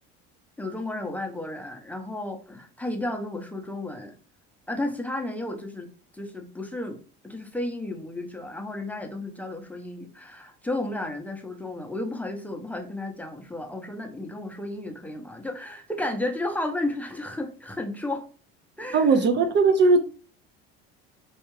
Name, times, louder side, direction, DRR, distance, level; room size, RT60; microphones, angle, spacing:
voice 1, 0.6-4.1 4.7-5.9 6.1-7.0 7.2-18.3 18.8-19.3, left 1 dB, 5° left, 0.6 m, -33 dB
voice 2, 18.9-20.0, right 4 dB, 40° right, 0.5 m, -19 dB
4.4 x 2.3 x 3.1 m
supercardioid pair, 105°, 29 cm